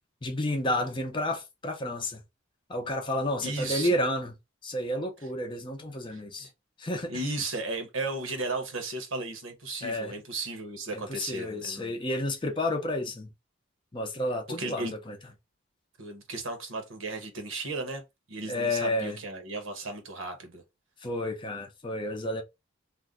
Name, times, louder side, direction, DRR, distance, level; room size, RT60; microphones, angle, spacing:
voice 1, 0.2-2.2 2.7-4.3 4.6-6.5 6.8-7.2 9.8-10.2 10.9-13.3 13.9-15.2 18.5-19.2 21.0-22.4, left 1 dB, 25° left, 0.5 m, -31 dB
voice 2, 3.4-3.9 6.1-6.5 7.1-11.9 14.6-14.9 16.0-18.0 18.3-20.6, right 2 dB, 75° right, 0.9 m, -35 dB
2.5 x 2.1 x 3.5 m
head